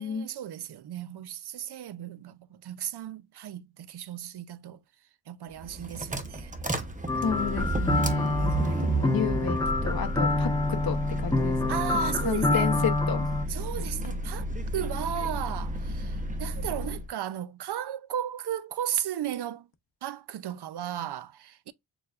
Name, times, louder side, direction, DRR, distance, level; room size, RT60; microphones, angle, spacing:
voice 1, 0.0-4.8 5.3-6.6 8.4-8.9 11.7-12.7 13.5-14.5 14.7-19.7 20.0-21.7, right 10 dB, 60° right, 0.5 m, -35 dB
sound 1, 5.5-17.1, right 1 dB, 20° right, 0.7 m, -32 dB
sound 2, 7.1-13.4, left 3 dB, 10° left, 0.3 m, -27 dB
voice 2, 7.2-11.6 11.9-13.3, left 7 dB, 55° left, 0.7 m, -32 dB
6.7 x 2.2 x 2.3 m
wide cardioid pair, 85°, 45 cm